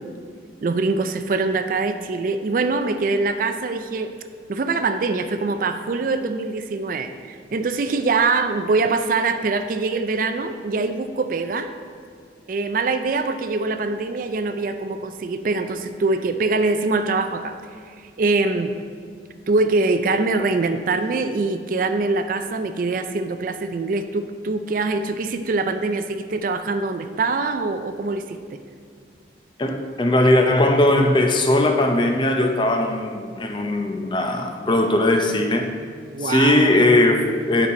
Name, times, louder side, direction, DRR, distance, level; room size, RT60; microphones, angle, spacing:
voice 1, 0.6-4.1 4.5-11.7 12.5-17.6 17.8-18.7 19.5-28.6 36.1-36.6, right 3 dB, 50° right, 8 dB, 0.4 m, -23 dB
voice 2, 29.6-35.8 36.2-37.7, left 1 dB, 25° left, 4 dB, 0.5 m, -19 dB
8.7 x 5.4 x 4.2 m, 2.3 s
head